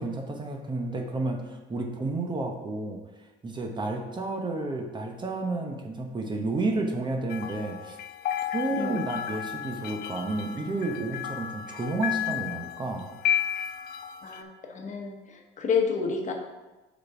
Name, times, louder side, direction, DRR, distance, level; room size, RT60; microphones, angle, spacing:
voice 1, 0.0-3.0 3.4-8.0 8.5-13.1, right 2 dB, 25° right, 2 dB, 1.0 m, -31 dB
sound 1, 7.3-14.4, left 10 dB, 65° left, 0.5 m, -33 dB
voice 2, 8.7-9.0 14.2-16.3, left 5 dB, 45° left, 2 dB, 1.1 m, -30 dB
6.3 x 4.3 x 4.8 m, 1.1 s
cardioid pair, 110°, 17 cm